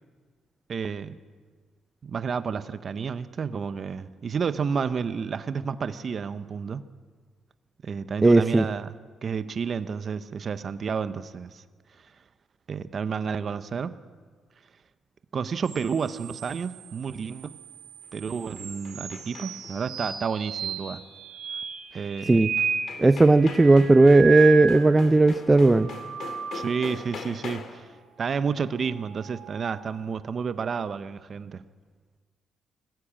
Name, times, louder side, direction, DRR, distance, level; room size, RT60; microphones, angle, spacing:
voice 1, 0.7-1.2 2.0-6.8 7.8-8.9 9.2-11.6 11.9-12.1 12.7-14.0 15.3-17.6 18.1-21.0 21.9-22.5 26.5-27.9 28.2-31.6, right 6 dB, 45° right, 13 dB, 0.8 m, -30 dB
voice 2, 8.2-8.6 22.3-22.5 23.0-25.9, right 2 dB, 20° right, 13 dB, 0.5 m, -16 dB
sound 1, 15.6-25.2 25.7-27.0 28.8-30.0, right 7 dB, 70° right, 2.8 m, -34 dB
sound 2, 18.0-19.8 22.2-22.3 22.6-27.9, left 5 dB, 65° left, 2.1 m, -42 dB
20.0 x 15.0 x 8.8 m, 1.5 s
cardioid pair, 90°, 0 cm